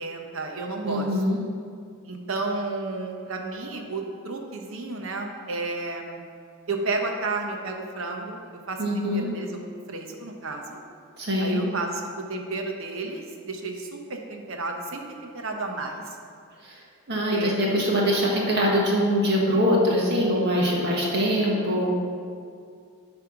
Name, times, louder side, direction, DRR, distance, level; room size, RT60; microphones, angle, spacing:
voice 1, 0.0-1.1 2.0-6.2 6.7-8.4 8.7-10.8 11.4-12.0 12.3-16.2 17.3-17.5 21.4-21.5, right 3 dB, 65° right, 2 dB, 0.9 m, -32 dB
voice 2, 0.8-1.4 8.8-9.3 11.2-11.6 16.6-21.9, equal, 50° right, -3 dB, 1.6 m, -23 dB
10.5 x 3.5 x 5.9 m, 2.2 s
head